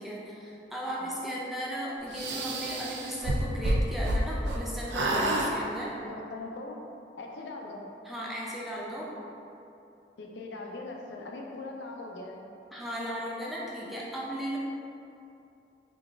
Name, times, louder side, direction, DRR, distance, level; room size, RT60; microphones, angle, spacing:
voice 1, 0.0-5.9 8.0-9.1 12.7-14.6, equal, ahead, -5 dB, 0.4 m, -36 dB
sound 1, 2.1-4.6 4.9-5.5, right 1 dB, 80° right, 0.4 m, -28 dB
voice 2, 5.0-5.5 6.0-6.8 7.2-7.8 10.2-12.4, left 2 dB, 85° left, 0 dB, 0.5 m, -40 dB
3.8 x 2.4 x 3.4 m, 2.7 s
head